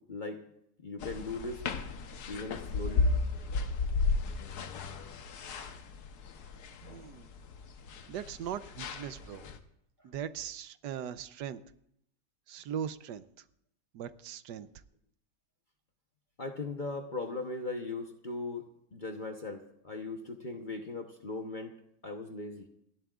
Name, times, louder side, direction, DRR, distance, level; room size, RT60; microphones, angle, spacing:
voice 1, 0.1-0.4 0.8-1.6 2.3-3.1 16.4-18.6 18.9-21.8 22.0-22.7, left 3 dB, 35° left, 4 dB, 0.9 m, -38 dB
sound 1, 1.0-9.6, left 4 dB, 70° left, 1.4 m, -34 dB
voice 2, 6.8-7.3 8.1-9.5 10.0-11.6 12.5-13.3 13.9-14.7, right 9 dB, 80° right, 13 dB, 1.3 m, -39 dB
29.0 x 11.5 x 2.4 m, 0.76 s
omnidirectional pair, 1.8 m